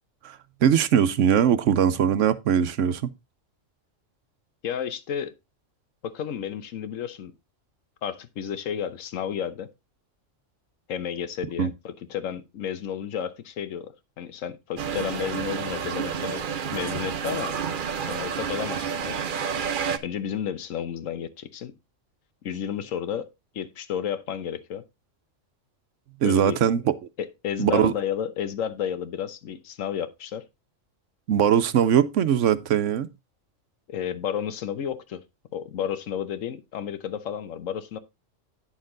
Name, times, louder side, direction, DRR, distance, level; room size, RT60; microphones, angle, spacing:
voice 1, 0.2-3.1 11.6-11.7 26.2-26.9 27.6-27.9 31.3-33.1, right 9 dB, 70° right, 1.0 m, -21 dB
voice 2, 4.6-5.3 6.0-7.3 8.0-9.7 10.9-16.4 16.7-17.5 18.0-19.7 20.0-21.7 22.4-23.3 23.5-24.8 26.2-26.6 27.2-30.5 33.9-35.2 35.5-38.0, left 9 dB, 80° left, 1.2 m, -32 dB
sound 1, 14.8-20.0, right 7 dB, 50° right, 0.8 m, -30 dB
9.6 x 6.5 x 3.8 m
omnidirectional pair, 1.4 m